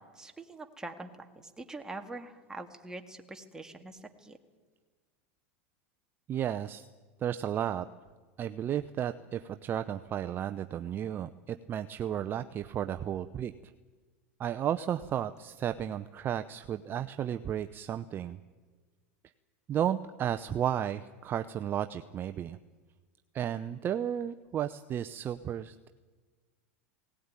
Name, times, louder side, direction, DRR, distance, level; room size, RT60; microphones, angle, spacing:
voice 1, 0.0-4.4, right 2 dB, 10° right, 5 dB, 2.0 m, -44 dB
voice 2, 6.3-6.8 7.2-7.9 8.4-13.5 14.4-18.4 19.7-22.6 23.3-25.9, right 10 dB, 30° right, 10 dB, 0.7 m, -33 dB
18.5 x 18.0 x 9.8 m, 1.4 s
supercardioid pair, 115°, 7 cm